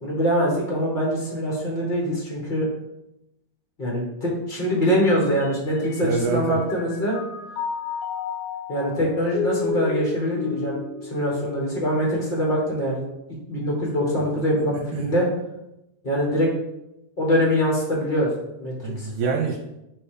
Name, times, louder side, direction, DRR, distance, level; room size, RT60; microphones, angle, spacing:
voice 1, 0.0-2.7 3.8-7.2 8.7-10.8 11.1-13.0 13.5-15.2 16.0-16.5 17.2-18.3 18.6-19.1, equal, 60° left, -3 dB, 0.5 m, -23 dB
Mallet percussion, 5.4-6.3 6.7-12.1, left 6 dB, 90° left, 2.1 m, -32 dB
voice 2, 6.0-6.6 14.7-15.1 18.8-19.6, right 4 dB, 80° right, 0 dB, 2.1 m, -26 dB
6.8 x 2.9 x 4.9 m, 0.89 s
omnidirectional pair, 3.5 m